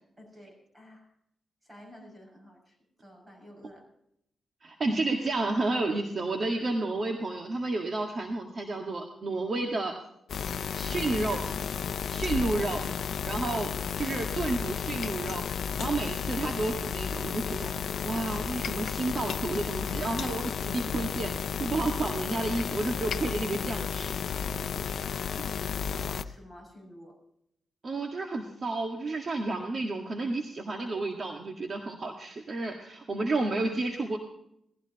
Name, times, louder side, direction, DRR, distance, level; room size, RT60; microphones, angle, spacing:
voice 1, 0.2-1.1 1.6-2.8 3.0-3.9 13.4-13.7 25.0-27.2, equal, 20° right, 2 dB, 6.6 m, -50 dB
voice 2, 4.6-9.9 10.8-11.5 12.1-12.9 13.2-13.7 14.0-15.4 15.8-17.7 18.0-21.3 21.6-24.4 27.8-34.2, right 2 dB, 50° right, 2 dB, 1.8 m, -31 dB
sound 1, 10.3-26.2, left 7 dB, 70° left, 0.5 m, -33 dB
18.5 x 15.5 x 3.0 m, 0.74 s
cardioid pair, 80°, 0 cm